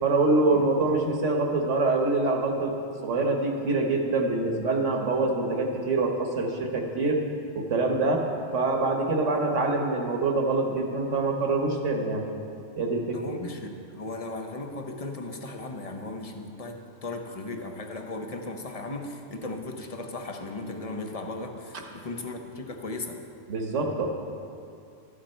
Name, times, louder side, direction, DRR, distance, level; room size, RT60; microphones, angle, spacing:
voice 1, 0.0-2.7 3.0-7.2 7.5-8.2 8.5-12.2 12.8-13.2 23.5-24.1, right 3 dB, 75° right, 2 dB, 1.5 m, -25 dB
voice 2, 13.1-23.2, left 2 dB, 35° left, 4 dB, 0.8 m, -36 dB
12.5 x 9.2 x 4.4 m, 2.4 s
omnidirectional pair, 1.3 m